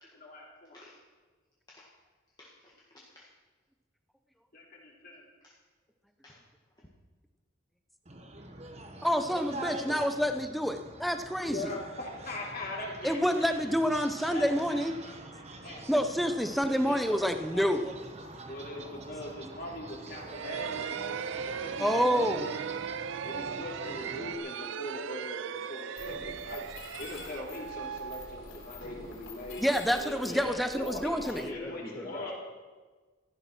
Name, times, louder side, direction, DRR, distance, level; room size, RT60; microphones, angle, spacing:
voice 1, 0.1-0.9 4.5-5.2 11.4-13.5 14.3-15.2 15.6-15.8 16.7-17.7 18.5-21.9 22.2-22.7 23.2-26.6 27.0-29.6 29.9-32.3, left 2 dB, 45° left, -3 dB, 3.2 m, -41 dB
voice 2, 2.4-3.3 5.4-5.5 6.2-6.4 30.2-30.7 31.2-32.3, left 1 dB, 20° left, -5 dB, 1.7 m, -44 dB
sound 1, 8.1-24.4, right 2 dB, 30° right, 1.1 m, -45 dB
voice 3, 9.0-11.7 13.0-15.0 15.9-17.9 21.8-22.5 29.6-31.5, equal, ahead, 8 dB, 0.7 m, -28 dB
sound 2, 20.2-28.9, right 7 dB, 60° right, 0.4 m, -38 dB
Mechanisms, 26.0-31.4, left 3 dB, 65° left, 3.8 m, -47 dB
15.0 x 11.5 x 6.1 m, 1.3 s
head